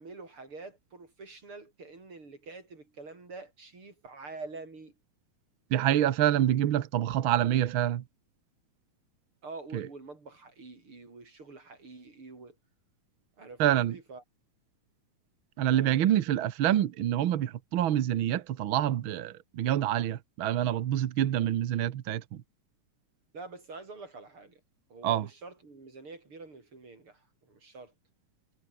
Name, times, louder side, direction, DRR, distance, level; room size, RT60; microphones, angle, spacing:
voice 1, 0.0-4.9 9.4-12.6 13.4-14.2 15.7-16.3 23.3-24.6 24.9-27.9, right 3 dB, 45° right, 6.3 m, -46 dB
voice 2, 5.7-8.0 9.7-9.9 13.6-14.0 15.6-22.4 25.0-25.3, right 11 dB, 65° right, 1.3 m, -27 dB
omnidirectional pair, 3.4 m